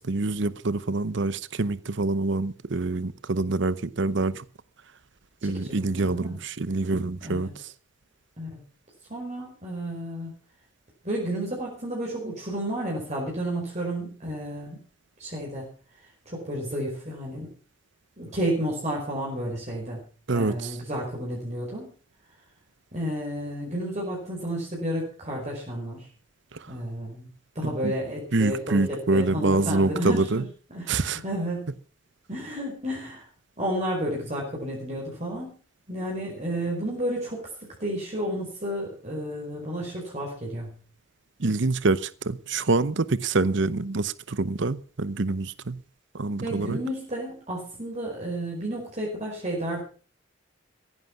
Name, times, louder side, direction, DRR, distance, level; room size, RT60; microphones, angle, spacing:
voice 1, 0.0-4.4 5.4-7.5 20.3-20.5 26.5-26.7 27.8-27.9 28.3-30.4 30.9-31.2 41.4-45.8 46.1-46.8, right 3 dB, 65° right, 0.8 m, -26 dB
voice 2, 5.4-6.4 7.2-7.5 8.4-8.6 9.1-10.3 11.0-14.8 15.2-15.7 16.0-17.5 18.2-20.0 20.3-21.9 22.9-26.1 26.7-27.3 27.5-31.7 32.3-33.3 33.6-35.6 35.9-40.8 46.4-49.8, right 1 dB, 35° right, 5.1 m, -32 dB
15.5 x 11.0 x 6.1 m
head